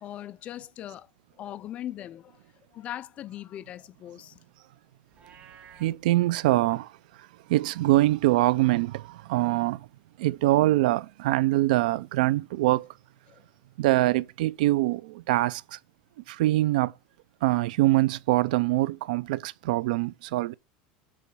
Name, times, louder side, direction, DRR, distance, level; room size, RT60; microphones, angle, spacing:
voice 1, 0.0-1.1 1.4-2.4 2.7-4.4 13.3-13.4, left 12 dB, 30° left, 0.3 m, -39 dB
Livestock farm animals working animals, 5.1-6.0, right 7 dB, 30° right, 1.0 m, -51 dB
voice 2, 5.8-6.9 7.5-9.8 10.2-12.9 13.8-15.8 16.3-16.9 17.4-20.5, right 17 dB, 90° right, 0.4 m, -24 dB
8.2 x 3.1 x 5.4 m
supercardioid pair, 160°, 4 cm